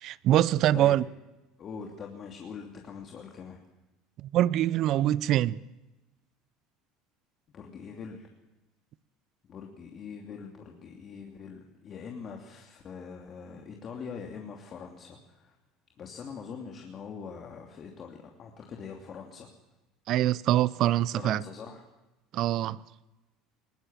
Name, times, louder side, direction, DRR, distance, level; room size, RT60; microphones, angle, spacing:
voice 1, 0.0-1.0 4.2-5.6 20.1-21.4 22.3-22.8, right 13 dB, 60° right, 0.6 m, -24 dB
voice 2, 1.6-3.6 7.5-8.3 9.5-15.6 16.0-19.5 21.1-21.8, left 6 dB, 40° left, 2.9 m, -43 dB
21.0 x 17.5 x 7.5 m
supercardioid pair, 90°, 0 cm